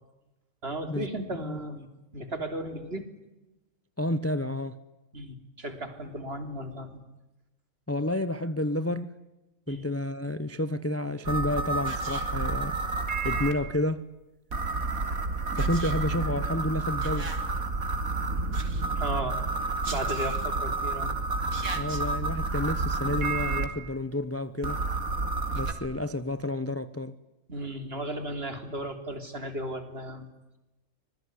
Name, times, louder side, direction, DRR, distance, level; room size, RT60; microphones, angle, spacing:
voice 1, 0.6-1.9 2.1-3.1 5.1-7.0 9.7-9.9 19.0-19.4 19.9-21.1 27.5-30.3, right 1 dB, 45° right, 3.8 m, -35 dB
voice 2, 4.0-4.8 7.9-9.1 9.7-12.8 13.2-14.1 15.5-17.3 21.7-24.8 25.5-27.2, left 1 dB, 10° left, 0.8 m, -30 dB
sound 1, 11.3-13.5 14.5-23.6 24.6-25.7, right 3 dB, 85° right, 3.3 m, -29 dB
25.5 x 22.0 x 9.7 m
omnidirectional pair, 1.4 m